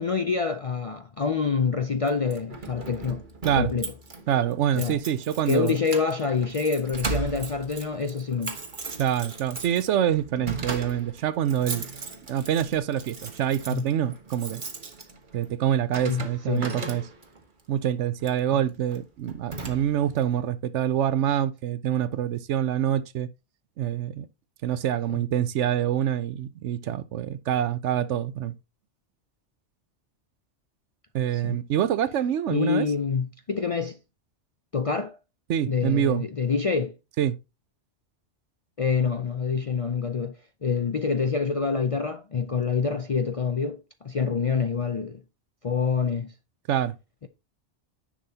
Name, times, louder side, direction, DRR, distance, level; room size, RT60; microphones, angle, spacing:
voice 1, 0.0-3.2 3.5-3.9 4.8-5.0 5.5-8.6 13.7-13.8 16.0-16.7 25.1-25.2 31.3-31.6 32.5-34.0 34.7-35.2 35.7-36.9 38.8-40.3 40.6-45.2 45.6-46.3, left 5 dB, 50° left, 0.4 m, -26 dB
Keys jangling, 2.1-17.4 18.2-18.4 18.9-19.0 19.3-20.2, right 3 dB, 45° right, 1.3 m, -37 dB
voice 2, 4.3-5.7 9.0-11.8 12.3-14.6 15.3-17.0 17.7-23.3 23.8-24.2 24.6-28.5 31.1-32.9 35.5-36.3 37.2-37.4 46.7-46.9, right 10 dB, 80° right, 1.0 m, -26 dB
10.0 x 6.2 x 2.8 m
omnidirectional pair, 1.2 m